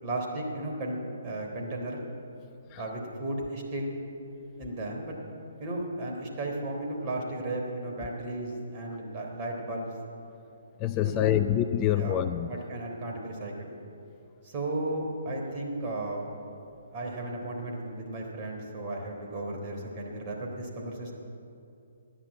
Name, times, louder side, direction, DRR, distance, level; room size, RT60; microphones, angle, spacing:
voice 1, 0.0-2.0 2.8-4.0 4.6-5.2 5.6-9.9 11.0-11.5 12.0-13.7 14.4-16.3 16.9-21.1, right 1 dB, 35° right, 0 dB, 3.6 m, -35 dB
voice 2, 10.8-12.5, left 11 dB, 25° left, 11 dB, 0.4 m, -26 dB
14.5 x 10.5 x 8.8 m, 2.7 s
figure-of-eight pair, 135°, 0 cm